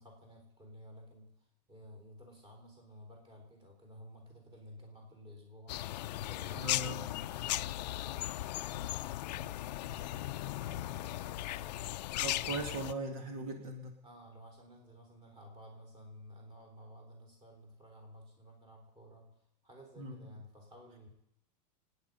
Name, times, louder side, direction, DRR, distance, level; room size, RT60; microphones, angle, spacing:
voice 1, 0.0-1.3 1.7-5.8 6.1-11.9 14.0-19.4 19.6-21.1, equal, 20° right, 2 dB, 3.9 m, -54 dB
sound 1, 5.7-12.9, left 15 dB, 75° left, 0.5 m, -37 dB
voice 2, 6.6-7.0 12.2-13.9 20.0-20.2, right 2 dB, 60° right, 5 dB, 2.2 m, -39 dB
26.5 x 9.5 x 5.4 m, 0.80 s
supercardioid pair, 165°, 21 cm